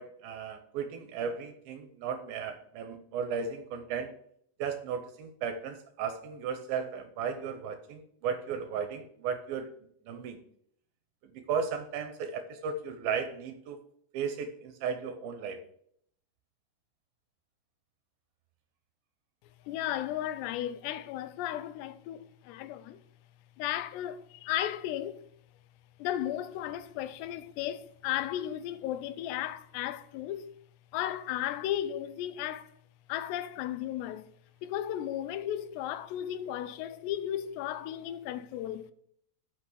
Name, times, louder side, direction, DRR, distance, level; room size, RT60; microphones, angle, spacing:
voice 1, 0.0-4.1 4.6-9.7 10.1-10.4 11.2-13.8 14.1-15.6, right 6 dB, 75° right, 2.4 m, -35 dB
voice 2, 19.7-23.0 23.6-25.3 26.0-30.5 30.9-32.7 33.1-34.3 34.6-38.9, left 12 dB, 85° left, 2.8 m, -35 dB
8.6 x 6.2 x 6.3 m
omnidirectional pair, 4.9 m